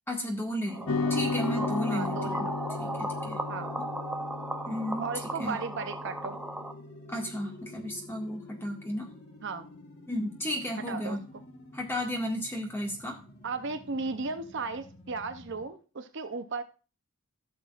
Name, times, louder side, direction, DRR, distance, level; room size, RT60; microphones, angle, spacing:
voice 1, 0.1-2.4 2.8-3.4 4.7-5.0 5.4-5.6 7.1-9.1 10.1-11.2 11.7-13.2, equal, 10° left, 0 dB, 1.9 m, -33 dB
sound 1, 0.7-15.6, left 1 dB, 50° left, 1.4 m, -50 dB
sound 2, 0.7-6.7, right 1 dB, 5° right, 0.7 m, -37 dB
sound 3, 0.9-9.4, left 4 dB, 80° left, 0.8 m, -36 dB
voice 2, 1.9-2.6 3.5-3.7 5.0-6.4 9.4-9.6 10.9-11.4 13.4-16.6, right 4 dB, 55° right, 9 dB, 0.6 m, -35 dB
16.0 x 6.5 x 2.5 m, 0.35 s
head